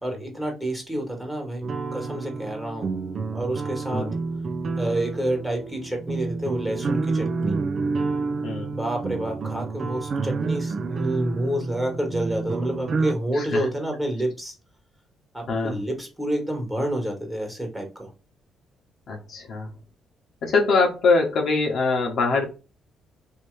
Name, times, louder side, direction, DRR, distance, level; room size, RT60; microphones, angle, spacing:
voice 1, 0.0-2.9 3.3-4.0 4.8-7.6 8.7-14.5 15.3-18.1, right 1 dB, 5° right, 2 dB, 1.5 m, -29 dB
sound 1, 1.6-13.1, right 4 dB, 50° right, 0.4 m, -29 dB
voice 2, 8.4-8.8 13.3-13.7 15.5-15.8 19.1-19.7 20.4-22.5, left 3 dB, 65° left, 1 dB, 1.0 m, -23 dB
3.0 x 2.8 x 3.2 m, 0.31 s
cardioid pair, 100°, 0 cm